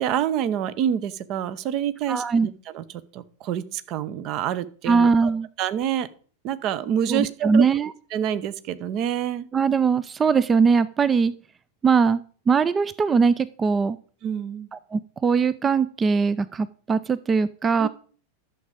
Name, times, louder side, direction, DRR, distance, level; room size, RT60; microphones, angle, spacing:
voice 1, 0.0-2.8 3.1-5.3 5.6-6.1 6.4-7.6 8.1-9.5 14.2-14.7 17.8-17.9, right 9 dB, 40° right, 15 dB, 0.8 m, -27 dB
voice 2, 2.1-2.5 4.9-5.5 7.1-7.9 9.5-11.3 11.8-12.2 12.5-14.0 14.7-17.9, right 5 dB, 20° right, 17 dB, 0.4 m, -21 dB
11.5 x 7.3 x 5.1 m, 0.43 s
figure-of-eight pair, 90°, 0 cm